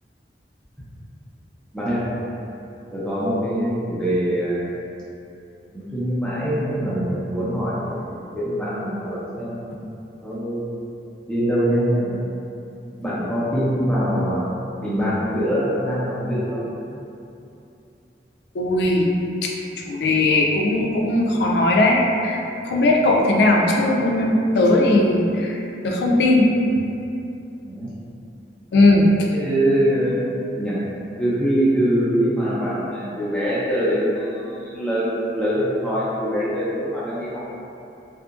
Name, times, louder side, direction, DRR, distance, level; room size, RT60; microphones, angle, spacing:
voice 1, 1.7-2.0 2.9-4.6 5.7-9.8 10.2-10.7 11.2-12.1 13.0-14.5 14.8-16.6 27.6-27.9 28.7-28.8 29.3-30.2 30.5-30.8 31.2-37.4, equal, 5° left, -10 dB, 0.5 m, -23 dB
voice 2, 18.5-19.5 19.9-26.5 28.7-29.1, left 2 dB, 70° left, 0 dB, 0.3 m, -18 dB
2.7 x 2.4 x 2.4 m, 2.7 s
head